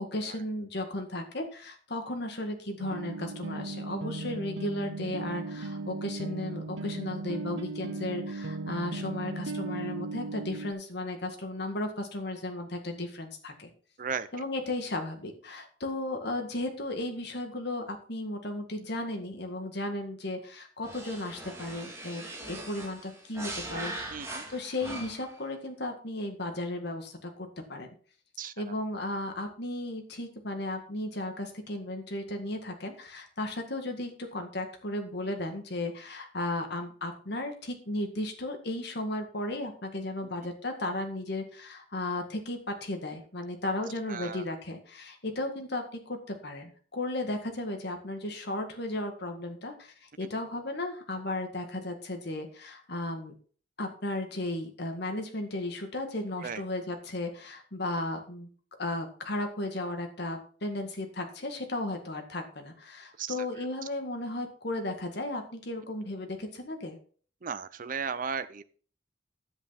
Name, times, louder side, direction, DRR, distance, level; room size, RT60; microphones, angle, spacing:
voice 1, 0.0-13.7 14.3-23.9 24.5-27.9 28.6-53.3 53.8-58.5 58.8-67.0, left 1 dB, 60° left, 5 dB, 1.9 m, -35 dB
sound 1, 2.8-10.7, right 2 dB, 80° right, 0.7 m, -37 dB
sound 2, 20.8-25.4, right 1 dB, 15° right, 2.8 m, -40 dB
voice 2, 24.1-24.4 28.4-28.5 44.1-44.4 56.4-56.6 63.2-63.3 67.4-68.6, right 6 dB, 45° right, 13 dB, 0.6 m, -35 dB
10.0 x 8.2 x 4.2 m, 0.44 s
head